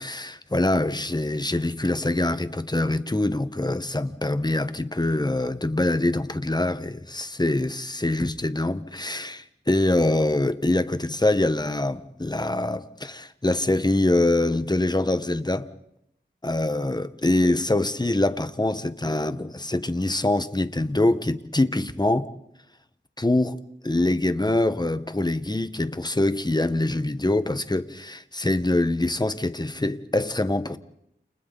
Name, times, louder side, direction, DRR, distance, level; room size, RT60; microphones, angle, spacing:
voice 1, 0.0-15.7 16.4-22.3 23.2-30.8, left 2 dB, 20° left, 1.3 m, -24 dB
30.0 x 29.0 x 4.1 m
wide cardioid pair, 50°, 19 cm